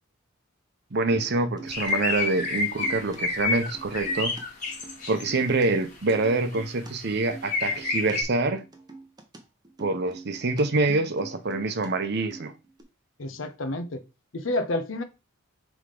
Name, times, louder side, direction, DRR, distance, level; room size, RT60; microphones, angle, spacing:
voice 1, 0.9-4.4 5.1-8.6 9.8-12.5, right 3 dB, 55° right, 0.8 m, -26 dB
sound 1, 1.1-1.9 2.2-3.2 3.4-5.7 5.9-8.1 8.4-11.9 12.2-12.8, right 3 dB, 20° right, 0.9 m, -44 dB
sound 2, 1.7-5.3 5.9-6.1 6.5-6.7 7.0-7.1 7.4-8.2, left 4 dB, 40° left, 2.0 m, -29 dB
voice 2, 13.2-14.0 14.3-15.0, left 1 dB, 65° left, 0.8 m, -29 dB
5.7 x 3.6 x 4.9 m
head